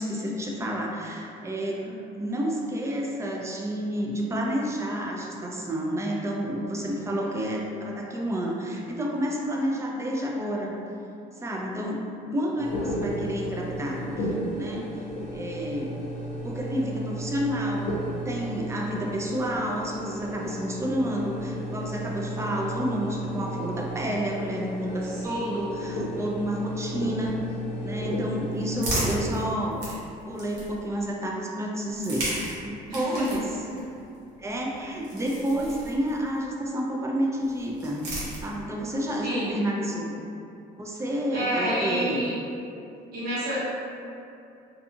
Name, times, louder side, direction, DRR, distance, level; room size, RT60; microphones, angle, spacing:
voice 1, 0.0-1.9 2.2-10.8 11.4-12.0 12.3-15.1 15.3-16.0 16.4-27.4 27.8-29.8 30.3-33.5 34.4-38.1 38.4-40.2 40.8-42.2, equal, 15° right, -2 dB, 0.4 m, -30 dB
sound 1, 12.6-29.5, right 1 dB, 50° left, 0.6 m, -34 dB
voice 2, 25.1-25.7 32.9-33.5 39.2-39.6 41.3-42.3 43.1-43.6, equal, 60° right, -10 dB, 1.0 m, -29 dB
sound 2, 28.0-31.0 31.8-36.4 37.4-38.9, right 1 dB, 85° right, 0.9 m, -36 dB
2.6 x 2.3 x 2.7 m, 2.6 s
cardioid pair, 110°, 17 cm